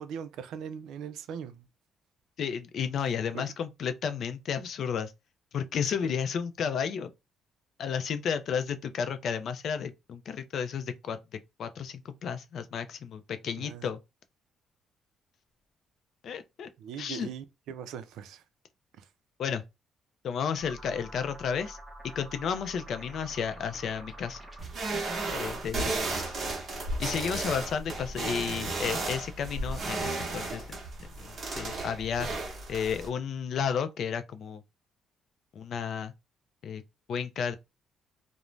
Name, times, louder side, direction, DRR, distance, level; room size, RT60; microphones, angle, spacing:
voice 1, 0.0-1.7 3.3-3.5 6.0-6.1 13.6-13.9 16.8-18.4 19.0-19.1 25.3-25.4, right 8 dB, 80° right, 0.4 m, -40 dB
voice 2, 2.4-5.1 5.5-7.1 7.8-11.2 11.6-14.0 16.2-16.7 17.0-17.3 19.4-19.6 20.2-21.8 22.0-24.4 25.3-26.3 27.0-30.8 31.2-32.3 32.7-34.6 35.5-36.1 36.6-36.8 37.1-37.6, left 7 dB, 55° left, 0.4 m, -32 dB
sound 1, 20.6-25.0, right 1 dB, 5° right, 0.7 m, -47 dB
sound 2, 24.6-33.1, right 2 dB, 40° right, 0.8 m, -34 dB
2.5 x 2.0 x 3.1 m
cardioid pair, 145°, 0 cm